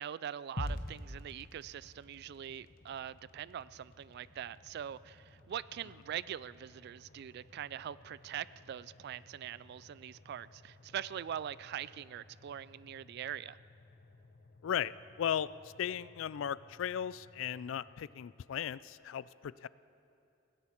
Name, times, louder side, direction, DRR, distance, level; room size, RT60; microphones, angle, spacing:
voice 1, 0.0-13.6, right 9 dB, 55° right, 19 dB, 0.3 m, -43 dB
sound 1, 0.6-18.8, left 1 dB, 50° left, 1.0 m, -51 dB
voice 2, 14.6-15.5 15.8-19.7, left 9 dB, 70° left, 19 dB, 0.3 m, -36 dB
17.5 x 17.0 x 4.5 m, 2.9 s
head